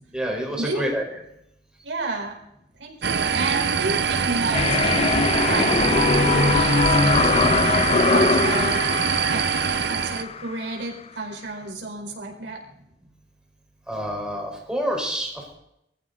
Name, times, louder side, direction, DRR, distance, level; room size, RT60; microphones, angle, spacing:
voice 1, 0.1-1.0 13.9-15.5, equal, 5° right, 0 dB, 4.8 m, -27 dB
voice 2, 1.8-2.3 2.8-5.1 5.5-8.8 9.3-9.6 9.9-12.6, right 2 dB, 90° right, 1 dB, 4.5 m, -32 dB
sound 1, 3.0-10.2, right 6 dB, 65° right, 1.0 m, -24 dB
sound 2, 4.5-10.5, left 4 dB, 35° left, 0.6 m, -21 dB
21.0 x 15.0 x 4.1 m, 0.80 s
head